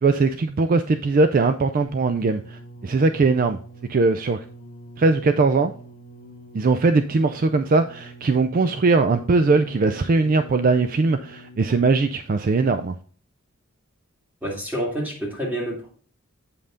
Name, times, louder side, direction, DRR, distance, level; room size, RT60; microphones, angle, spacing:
voice 1, 0.0-3.6 3.9-4.4 5.0-5.7 6.5-12.9, right 3 dB, 40° right, 9 dB, 0.4 m, -20 dB
sound 1, 1.8-11.9 12.8-12.9, equal, 60° left, 1.0 m, -44 dB
voice 2, 14.4-15.9, equal, 10° right, -2 dB, 2.3 m, -28 dB
8.3 x 5.4 x 3.7 m, 0.42 s
head